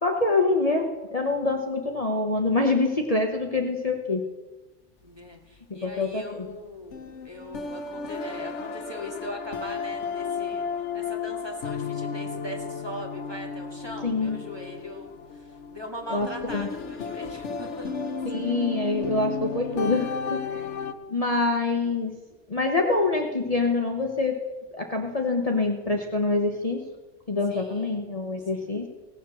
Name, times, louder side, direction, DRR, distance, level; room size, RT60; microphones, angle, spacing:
voice 1, 0.0-4.2 5.7-6.5 14.0-14.4 16.1-16.7 18.3-20.4 21.1-22.2 22.5-24.4 24.7-26.8 27.3-28.9, left 3 dB, 30° left, 2 dB, 1.2 m, -25 dB
voice 2, 5.0-18.5 20.4-21.0 27.5-28.2 28.5-28.8, left 1 dB, 20° right, 1 dB, 2.1 m, -40 dB
sound 1, 6.9-20.9, left 5 dB, 75° left, 1.2 m, -33 dB
17.5 x 7.4 x 7.1 m, 1.2 s
omnidirectional pair, 1.3 m